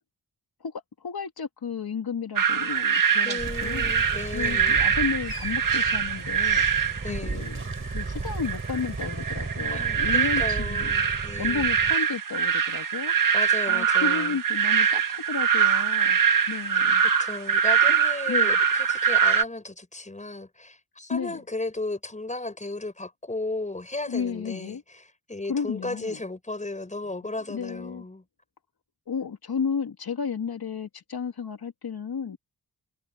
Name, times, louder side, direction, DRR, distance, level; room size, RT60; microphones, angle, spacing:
voice 1, 0.6-3.9 4.3-10.9 11.4-13.1 13.7-16.2 16.5-17.0 18.3-18.6 21.1-21.4 24.1-24.8 25.5-26.2 27.5-28.1 29.1-32.4, left 6 dB, 70° left, 2.6 m, -33 dB
sound 1, 2.4-19.4, right 7 dB, 55° right, 1.6 m, -24 dB
voice 2, 3.2-4.8 7.0-7.5 9.7-11.7 13.3-14.4 16.8-16.9 17.2-28.2, left 2 dB, 20° left, 5.6 m, -35 dB
sound 2, 3.4-11.9, right 3 dB, 30° right, 4.3 m, -35 dB
wide cardioid pair, 145°, 39 cm